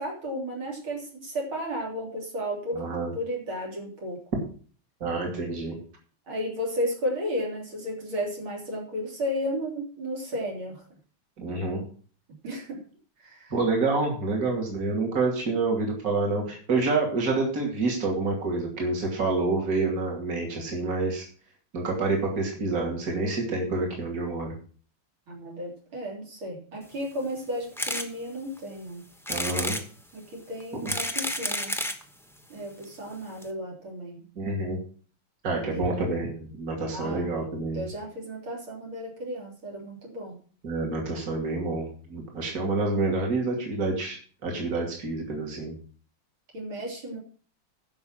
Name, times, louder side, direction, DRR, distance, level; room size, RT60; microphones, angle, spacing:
voice 1, 0.0-2.8 3.1-4.2 6.3-10.8 12.4-12.8 13.2-13.5 25.3-29.0 30.1-31.7 32.5-34.3 35.5-35.9 36.9-37.2 37.7-40.4 46.5-47.2, equal, 75° right, -1 dB, 4.3 m, -33 dB
voice 2, 2.7-3.1 5.0-5.8 11.4-11.8 13.5-21.3 21.7-24.5 29.3-29.8 30.8-30.9 34.4-34.8 35.4-37.8 40.6-44.2 44.4-45.7, right 3 dB, 40° right, 0 dB, 3.2 m, -28 dB
sound 1, 27.8-28.1 28.6-28.7 29.3-29.9 30.6-32.0 32.8-32.9 33.1-33.2 33.4-33.5, left 1 dB, 5° left, 0.3 m, -30 dB
11.0 x 6.1 x 7.5 m, 0.42 s
omnidirectional pair, 2.3 m